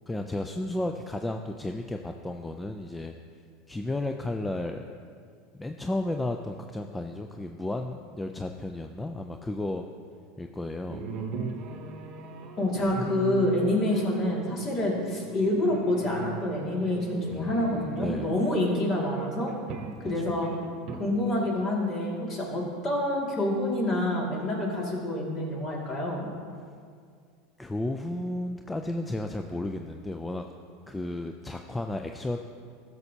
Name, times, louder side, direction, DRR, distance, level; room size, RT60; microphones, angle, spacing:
voice 1, 0.1-3.1 3.7-4.8 5.5-9.9 10.4-11.1 12.8-13.1 17.3-18.3 20.0-20.2 27.6-30.5 30.9-32.4, left 1 dB, 10° left, 5 dB, 0.4 m, -33 dB
sound 1, 10.9-21.0, right 4 dB, 55° right, 0.8 m, -39 dB
voice 2, 12.6-19.5 20.0-20.5 21.0-26.3, left 1 dB, 40° left, -2 dB, 2.2 m, -27 dB
13.5 x 6.8 x 2.8 m, 2.2 s
hypercardioid pair, 100°, 0 cm